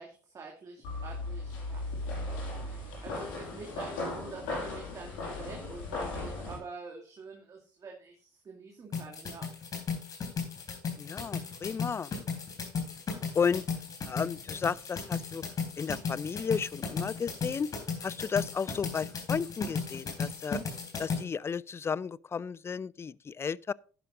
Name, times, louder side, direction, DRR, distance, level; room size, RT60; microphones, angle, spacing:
voice 1, 0.0-9.5, right 4 dB, 40° right, 2.3 m, -46 dB
sound 1, 0.8-6.6, left 2 dB, 75° left, 5.9 m, -37 dB
sound 2, 8.9-21.2, left 5 dB, 45° left, 3.8 m, -35 dB
voice 2, 11.0-12.1 13.3-13.6 14.0-15.4 15.8-17.7 18.0-20.6 21.0-23.7, left 6 dB, 30° left, 0.4 m, -33 dB
11.0 x 11.0 x 2.6 m
hypercardioid pair, 60°, 9 cm